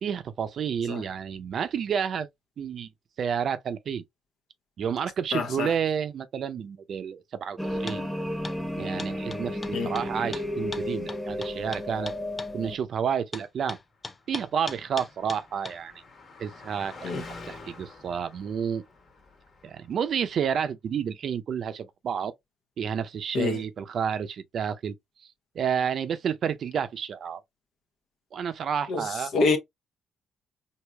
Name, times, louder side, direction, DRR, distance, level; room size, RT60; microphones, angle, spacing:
voice 1, 0.0-2.3 2.6-2.9 3.2-4.0 4.8-8.1 8.8-12.1 12.5-13.8 14.3-15.9 16.4-18.8 19.6-22.3 22.8-24.9 25.5-27.4 28.3-29.3, right 7 dB, 60° right, 0.5 m, -30 dB
voice 2, 5.3-5.7 9.7-9.9 17.0-17.2 23.3-23.6 28.9-29.6, left 4 dB, 75° left, 0.9 m, -26 dB
sound 1, 7.6-12.8, left 1 dB, ahead, 0.9 m, -32 dB
sound 2, 7.9-8.0 8.4-8.6 9.0-12.5 13.3-15.8, left 3 dB, 25° left, 0.5 m, -39 dB
Car passing by, 14.1-20.1, left 3 dB, 55° left, 1.3 m, -48 dB
4.7 x 2.7 x 2.2 m
cardioid pair, 90°, 0 cm